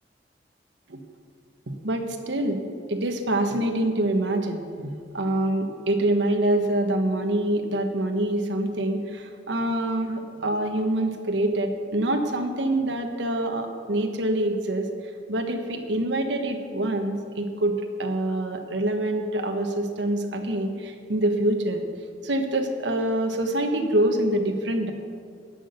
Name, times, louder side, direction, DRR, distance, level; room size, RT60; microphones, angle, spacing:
voice 1, 1.7-2.6 2.9-14.9 15.3-21.8 22.2-24.9, right 1 dB, 75° right, 5 dB, 1.3 m, -25 dB
13.5 x 6.3 x 9.2 m, 2.1 s
head